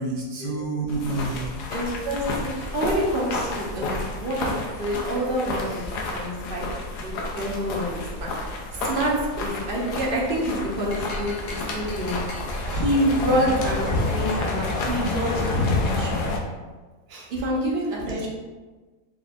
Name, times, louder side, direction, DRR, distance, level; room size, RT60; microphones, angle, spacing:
voice 1, 0.0-1.6 13.3-13.5 17.1-17.3 18.0-18.3, right 3 dB, 80° right, -4 dB, 0.4 m, -30 dB
sound 1, 0.9-16.4, left 2 dB, 80° left, 1.2 m, -30 dB
voice 2, 1.7-6.7 7.0-8.3 8.7-12.2 12.7-16.3 17.3-18.3, equal, 45° right, -4 dB, 0.8 m, -27 dB
sound 2, 10.8-16.6, left 1 dB, 60° left, 1.0 m, -41 dB
4.2 x 3.4 x 2.4 m, 1.3 s
omnidirectional pair, 1.7 m